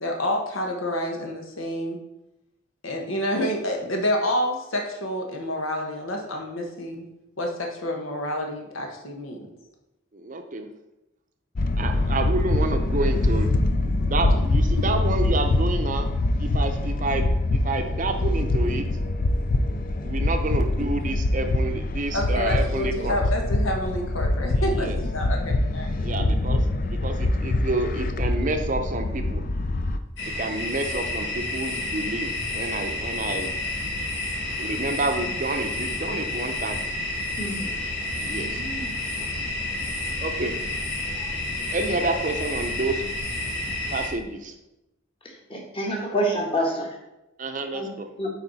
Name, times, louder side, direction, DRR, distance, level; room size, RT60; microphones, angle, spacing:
voice 1, 0.0-2.0 2.8-7.0 7.4-9.4 20.8-21.1 22.1-26.3 38.3-38.9, equal, 85° left, 1 dB, 1.3 m, -29 dB
voice 2, 10.1-10.7 11.8-13.7 14.0-16.1 16.4-18.8 20.0-23.2 24.6-25.0 26.0-29.4 30.4-33.6 34.6-36.8 38.2-38.6 40.2-40.6 41.7-43.0 43.9-44.5 47.4-48.1, right 2 dB, 40° right, 6 dB, 0.6 m, -29 dB
sound 1, 11.5-30.0, left 2 dB, 45° left, 0.4 m, -24 dB
sound 2, 30.2-44.1, left 2 dB, 60° left, 2.0 m, -30 dB
voice 3, 37.4-37.7 45.5-46.9 47.7-47.9 48.2-48.3, equal, 25° left, -1 dB, 1.4 m, -26 dB
8.4 x 4.7 x 4.1 m, 0.93 s
head